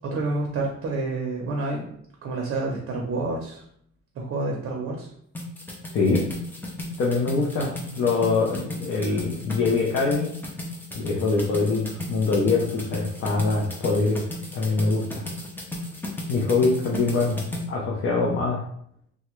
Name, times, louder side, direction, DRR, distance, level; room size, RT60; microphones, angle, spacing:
voice 1, 0.0-1.9 2.2-3.6 4.2-5.1, right 2 dB, 45° right, 0 dB, 0.6 m, -28 dB
sound 1, 5.4-17.6, left 1 dB, 5° left, 0.4 m, -35 dB
voice 2, 7.0-10.3 10.9-14.2 14.5-15.2 16.3-17.4 17.7-18.6, left 3 dB, 50° left, -3 dB, 0.6 m, -23 dB
3.4 x 2.1 x 3.0 m, 0.68 s
cardioid pair, 170°, 29 cm